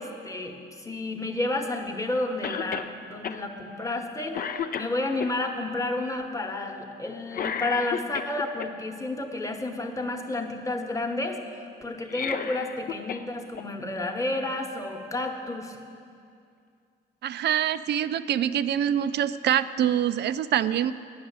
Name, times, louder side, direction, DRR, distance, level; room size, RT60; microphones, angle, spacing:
voice 1, 0.0-4.5 4.8-15.8, left 2 dB, 15° left, 3 dB, 1.1 m, -31 dB
Cough, 2.4-2.9 3.2-3.4 3.9-4.1 4.3-5.3 7.3-8.7 11.9-13.3 13.6-13.7 14.8-14.9, left 7 dB, 45° left, 0.5 m, -32 dB
voice 2, 17.2-20.9, right 10 dB, 60° right, 14 dB, 0.4 m, -25 dB
9.5 x 6.4 x 8.7 m, 2.3 s
cardioid pair, 90°, 20 cm